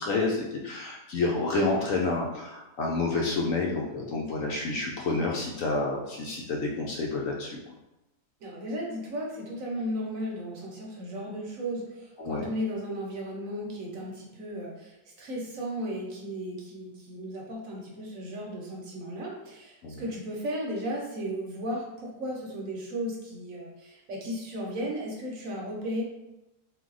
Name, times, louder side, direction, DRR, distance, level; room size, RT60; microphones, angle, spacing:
voice 1, 0.0-7.6 12.2-12.5 19.8-20.0, left 3 dB, 70° left, -1 dB, 0.8 m, -29 dB
voice 2, 8.4-26.0, equal, 60° right, -2 dB, 1.1 m, -35 dB
3.6 x 2.6 x 3.8 m, 0.96 s
omnidirectional pair, 1.7 m